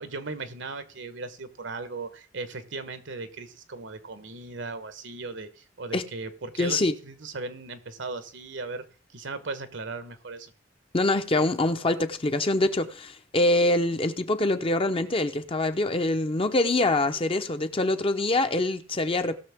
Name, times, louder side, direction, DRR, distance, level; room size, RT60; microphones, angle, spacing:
voice 1, 0.0-8.9 9.1-10.5, right 3 dB, 75° right, 1.1 m, -37 dB
voice 2, 6.6-6.9 10.9-19.3, left 2 dB, 30° left, 0.7 m, -24 dB
18.5 x 6.6 x 3.5 m
head